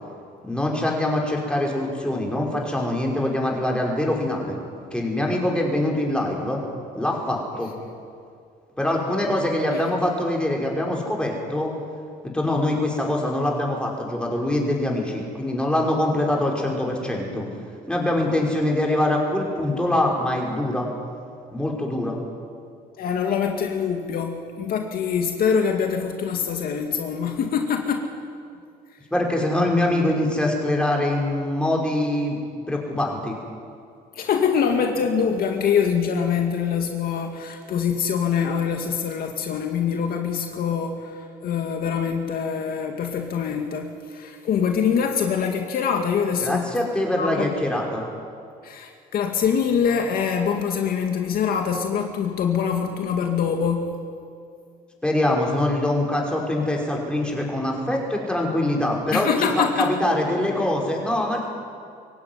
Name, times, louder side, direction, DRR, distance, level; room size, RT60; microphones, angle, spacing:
voice 1, 0.4-4.6 4.9-6.6 6.9-7.7 8.8-11.7 12.3-17.5 17.9-20.9 21.5-22.2 29.1-32.4 32.7-33.4 46.4-48.1 55.0-61.4, left 1 dB, 5° left, -1 dB, 5.6 m, -24 dB
voice 2, 23.0-28.1 34.1-46.7 47.2-47.5 48.6-54.0 59.1-60.0, left 7 dB, 60° left, 4 dB, 2.2 m, -24 dB
24.0 x 16.5 x 9.7 m, 2.4 s
cardioid pair, 110°, 17 cm